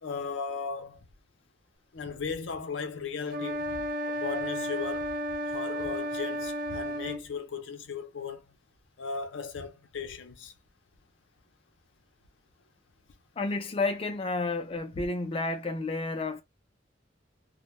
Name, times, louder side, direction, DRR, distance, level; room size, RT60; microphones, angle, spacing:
voice 1, 0.0-1.1 1.9-5.2 5.5-8.5 9.0-10.5, left 5 dB, 80° left, 0.5 m, -37 dB
sound 1, 3.3-7.2, equal, 50° right, 0.4 m, -33 dB
voice 2, 13.4-16.4, left 3 dB, 30° left, 0.4 m, -31 dB
2.1 x 2.1 x 3.1 m
head